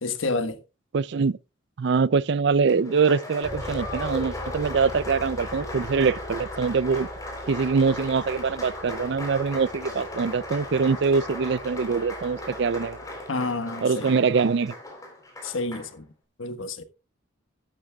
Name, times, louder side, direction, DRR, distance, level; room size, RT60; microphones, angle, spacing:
voice 1, 0.0-0.6 13.3-14.2 15.4-16.1 16.4-16.8, left 3 dB, 85° left, 1.4 m, -29 dB
voice 2, 0.9-1.4 1.8-7.1 7.5-13.0 13.8-14.7, right 5 dB, 60° right, 0.4 m, -23 dB
Applause, 2.7-15.9, left 1 dB, 15° left, 3.7 m, -36 dB
Bass guitar, 3.4-13.2, equal, 10° right, 5.4 m, -43 dB
15.0 x 12.0 x 2.3 m
head